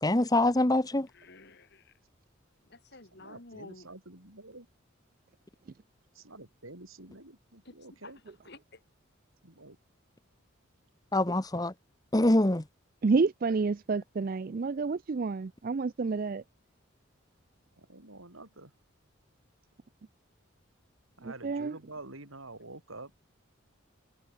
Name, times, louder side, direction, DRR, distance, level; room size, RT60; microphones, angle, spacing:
voice 1, 0.0-1.1 11.1-11.7 12.1-12.6, left 1 dB, 20° left, 1.0 m, -24 dB
voice 2, 1.1-1.9 2.7-3.9 7.6-8.8, left 2 dB, 55° left, 3.1 m, -51 dB
voice 3, 3.2-4.7 6.3-8.2 9.4-9.8 17.8-18.7 21.2-23.1, right 2 dB, 90° right, 6.5 m, -48 dB
voice 4, 13.0-16.4 21.2-21.8, right 4 dB, 45° right, 0.4 m, -29 dB
head